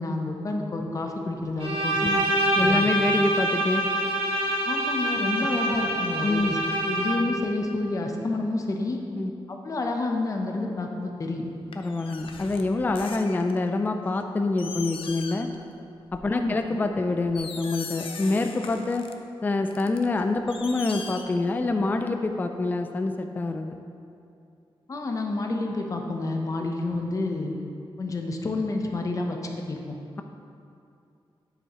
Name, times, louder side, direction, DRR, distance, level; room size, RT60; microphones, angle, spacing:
voice 1, 0.0-2.2 2.6-2.9 4.7-6.6 6.8-9.0 9.5-11.4 16.3-16.6 24.9-27.5 28.0-29.4 29.7-29.9, left 2 dB, 35° left, 2 dB, 0.8 m, -29 dB
Bowed string instrument, 1.6-7.4, right 1 dB, 80° right, 1.5 m, -25 dB
voice 2, 2.6-3.8 6.2-6.5 9.2-9.3 11.8-15.5 16.1-19.0 19.4-23.7 26.6-26.7, left 3 dB, 20° left, 6 dB, 0.3 m, -26 dB
sound 1, 11.7-13.7 14.2-14.3 14.6-15.6 15.9-16.2 16.8-16.9 17.3-19.1 19.7-21.7 22.0-22.1, left 5 dB, 75° left, 0.6 m, -40 dB
8.9 x 7.9 x 3.0 m, 2.5 s
wide cardioid pair, 165°, 9 cm